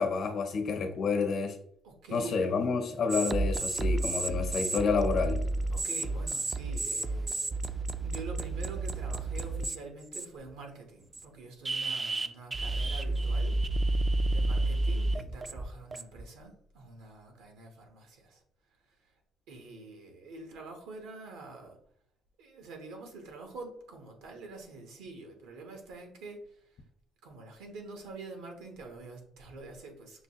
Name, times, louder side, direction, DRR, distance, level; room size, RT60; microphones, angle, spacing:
voice 1, 0.0-1.6 2.1-5.4, left 5 dB, 60° left, 5 dB, 0.8 m, -29 dB
voice 2, 1.8-2.6 5.7-13.6 14.3-18.4 19.0-19.1 19.5-21.8 22.4-26.8 27.2-30.2, right 2 dB, 85° right, 3 dB, 1.0 m, -46 dB
sound 1, 3.1-9.8 10.1-10.5 11.1-11.2 11.6-16.2, right 2 dB, 25° right, 0.3 m, -31 dB
5.9 x 2.3 x 2.9 m, 0.64 s
cardioid pair, 85°, 0 cm